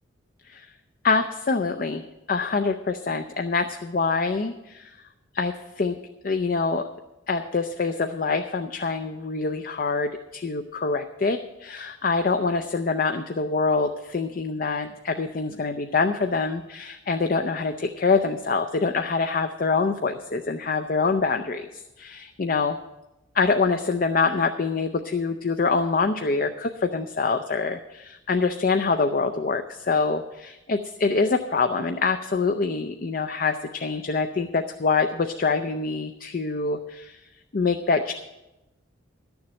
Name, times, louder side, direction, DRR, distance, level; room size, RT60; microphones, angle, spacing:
voice 1, 1.0-4.9 5.3-6.0 6.2-6.9 7.3-21.7 22.0-22.8 23.3-37.2 37.5-38.1, left 4 dB, 45° left, 6 dB, 0.5 m, -25 dB
11.5 x 7.1 x 7.6 m, 0.98 s
head